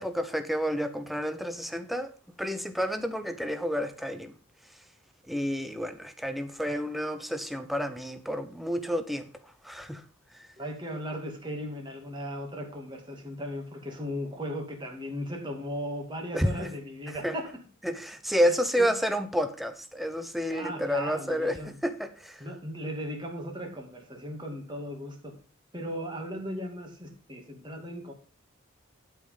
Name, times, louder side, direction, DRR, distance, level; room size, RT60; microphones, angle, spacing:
voice 1, 0.0-2.1 2.4-4.3 5.3-9.3 9.6-10.0 16.3-16.7 17.2-17.3 17.8-22.4, equal, ahead, 0.9 m, -30 dB
voice 2, 10.6-17.6 18.5-18.9 20.5-21.8 22.4-25.3 25.7-28.1, equal, 20° right, 2.5 m, -37 dB
12.0 x 5.7 x 5.2 m
head